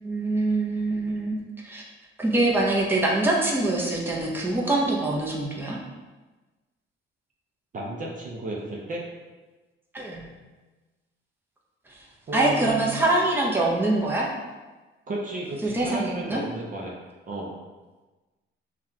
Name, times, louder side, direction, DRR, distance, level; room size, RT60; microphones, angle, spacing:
voice 1, 0.0-1.4 1.6-1.8 2.2-5.8 9.9-10.3 12.3-14.3 15.6-16.4, right 2 dB, 10° right, -3 dB, 0.8 m, -24 dB
voice 2, 7.7-9.0 12.3-13.1 15.1-17.0 17.3-17.6, right 2 dB, 40° right, -2 dB, 0.7 m, -33 dB
5.5 x 2.4 x 2.8 m, 1.2 s
cardioid pair, 90°, 20 cm